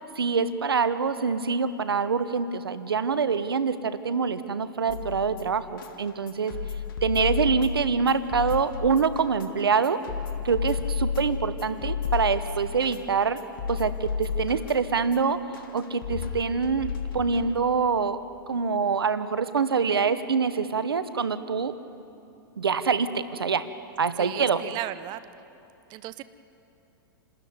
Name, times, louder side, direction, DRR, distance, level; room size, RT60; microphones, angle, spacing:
voice 1, 0.2-6.5 7.0-10.0 10.4-13.4 13.7-15.4 15.7-18.2 18.5-21.7 22.6-23.7 24.0-24.6, right 5 dB, 90° right, 13 dB, 1.0 m, -25 dB
sound 1, 4.9-17.9, left 6 dB, 70° left, 2.3 m, -33 dB
voice 2, 12.6-13.0 24.2-25.2 25.9-26.2, right 15 dB, 40° right, 14 dB, 0.8 m, -36 dB
28.0 x 13.0 x 9.5 m, 2.8 s
hypercardioid pair, 110°, 12 cm